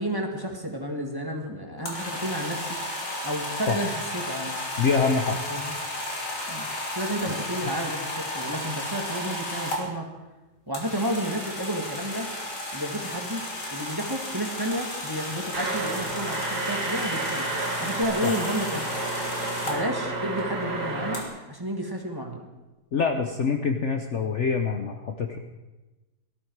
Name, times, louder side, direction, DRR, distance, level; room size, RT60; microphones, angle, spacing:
voice 1, 0.0-2.8 3.2-4.7 5.5-5.7 6.5-6.7 6.9-10.1 10.7-12.3 12.7-13.4 13.7-18.9 19.7-22.4, equal, 15° right, 2 dB, 1.8 m, -31 dB
sound 1, 1.8-9.8 10.7-19.8 21.1-21.2, left 1 dB, 90° left, 3.4 m, -33 dB
voice 2, 4.8-5.4 7.3-7.5 18.2-18.3 22.9-25.4, left 5 dB, 50° left, 5 dB, 1.0 m, -25 dB
sound 2, 15.5-21.2, right 2 dB, 75° right, 3.1 m, -31 dB
sound 3, 18.0-20.0, left 1 dB, 10° left, 2.4 m, -44 dB
18.0 x 13.5 x 4.7 m, 1.1 s
omnidirectional pair, 1.8 m